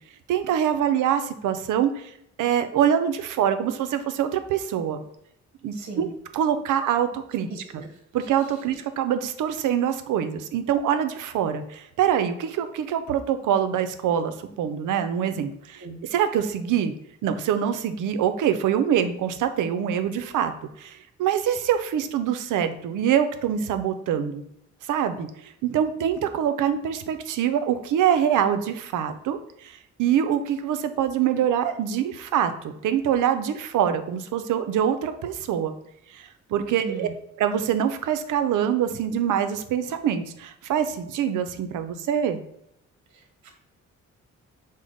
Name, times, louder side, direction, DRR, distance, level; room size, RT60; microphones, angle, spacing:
voice 1, 0.3-2.1 2.4-5.0 5.6-6.1 6.3-7.5 7.7-7.8 8.1-15.8 16.1-16.9 17.2-20.5 20.8-24.4 24.9-29.7 30.0-35.7 36.1-37.1 37.4-42.4, right 9 dB, 85° right, 9 dB, 0.5 m, -24 dB
voice 2, 5.7-6.1 7.5-8.3 15.8-16.1 36.8-37.1 43.1-43.5, right 4 dB, 65° right, 3 dB, 0.8 m, -39 dB
4.9 x 2.1 x 3.9 m, 0.78 s
cardioid pair, 105°, 30 cm